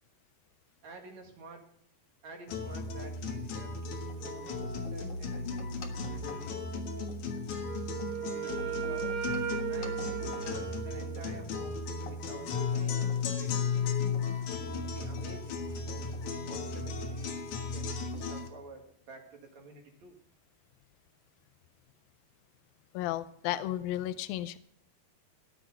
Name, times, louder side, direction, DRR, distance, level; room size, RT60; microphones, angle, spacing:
voice 1, 0.8-1.7 2.2-5.7 6.1-7.0 8.3-9.3 9.7-13.6 14.5-20.2, right 3 dB, 50° right, 2 dB, 2.9 m, -50 dB
sound 1, 2.5-18.5, left 4 dB, 60° left, 2.6 m, -35 dB
Wind instrument woodwind instrument, 7.6-11.5, right 12 dB, 70° right, 2.6 m, -37 dB
voice 2, 22.9-24.6, left 13 dB, 80° left, 12 dB, 2.2 m, -33 dB
16.5 x 10.5 x 4.9 m, 0.66 s
omnidirectional pair, 4.6 m